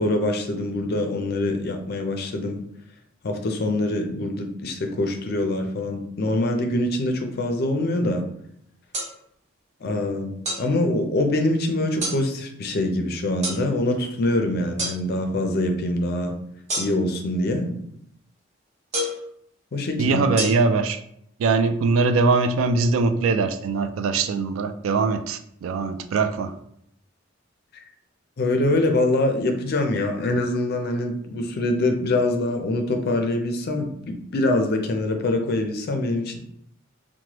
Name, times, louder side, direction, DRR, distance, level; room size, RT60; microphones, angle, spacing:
voice 1, 0.0-2.6 3.2-8.2 9.8-10.3 10.6-16.3 16.8-17.8 19.7-20.2 27.7-27.8 28.4-36.4, left 1 dB, 50° left, 0.4 m, -24 dB
sound 1, 8.9-9.1 10.5-10.6 12.0-12.2 13.4-13.6 14.8-15.0 16.7-17.1 18.9-19.2 20.4-20.5, equal, 35° right, 0.8 m, -27 dB
voice 2, 20.0-21.0 21.4-26.5, right 4 dB, 85° right, 0.3 m, -22 dB
3.1 x 2.1 x 2.9 m
head